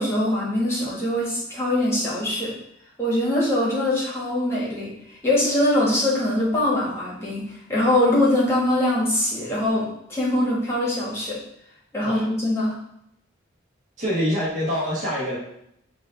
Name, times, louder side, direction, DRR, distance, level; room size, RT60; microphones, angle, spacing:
voice 1, 0.0-2.5 3.0-7.4 7.7-11.4 11.9-12.8, left 1 dB, 15° left, -6 dB, 1.4 m, -23 dB
voice 2, 14.0-15.4, equal, 40° right, -8 dB, 1.7 m, -25 dB
4.9 x 2.8 x 3.9 m, 0.75 s
head